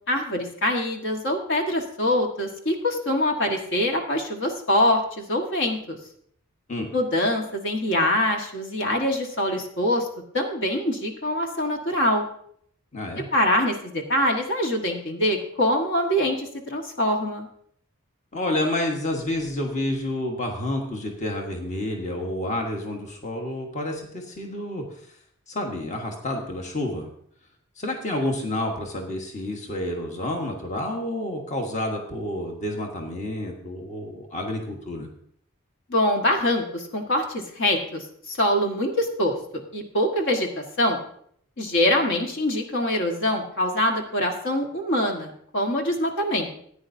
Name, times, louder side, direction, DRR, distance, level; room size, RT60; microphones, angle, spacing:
voice 1, 0.1-6.0 6.9-10.1 10.3-12.3 13.3-17.5 35.9-39.3 39.7-41.0 41.6-46.5, left 1 dB, 60° left, 2 dB, 1.5 m, -24 dB
voice 2, 12.9-13.2 18.3-24.9 25.5-27.1 27.8-35.1, left 1 dB, 35° left, 2 dB, 1.3 m, -29 dB
14.5 x 9.6 x 2.7 m, 0.64 s
head